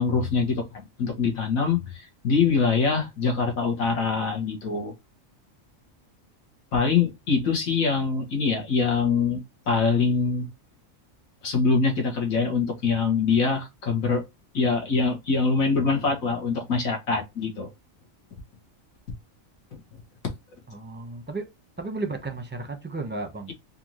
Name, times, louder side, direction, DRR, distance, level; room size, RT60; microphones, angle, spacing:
voice 1, 0.0-4.9 6.7-10.5 11.4-14.2 14.5-17.7 19.7-19.8, left 4 dB, 80° left, 1.7 m, -24 dB
voice 2, 20.7-21.4 21.8-23.5, right 3 dB, 10° right, 0.6 m, -33 dB
4.3 x 2.6 x 2.9 m
omnidirectional pair, 1.4 m